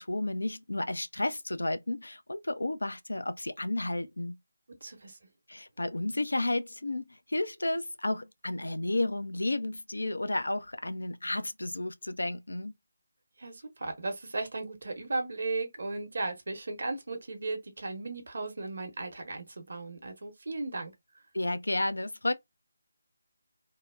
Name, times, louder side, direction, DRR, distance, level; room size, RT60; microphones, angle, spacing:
voice 1, 0.0-4.3 5.5-12.7 21.3-22.3, left 2 dB, 75° left, 0.5 m, -32 dB
voice 2, 4.7-5.2 13.4-20.9, right 3 dB, 55° right, 1.0 m, -36 dB
2.8 x 2.0 x 2.3 m
figure-of-eight pair, 155°, 0 cm